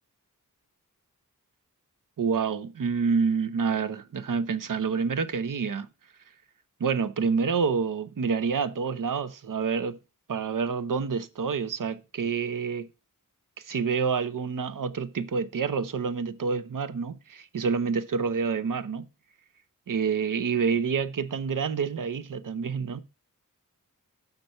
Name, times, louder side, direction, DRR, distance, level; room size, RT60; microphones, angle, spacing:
voice 1, 2.2-5.9 6.8-10.0 10.3-12.9 13.6-19.1 19.9-23.0, right 5 dB, 70° right, 0.7 m, -28 dB
6.7 x 5.9 x 5.4 m
wide cardioid pair, 80°, 33 cm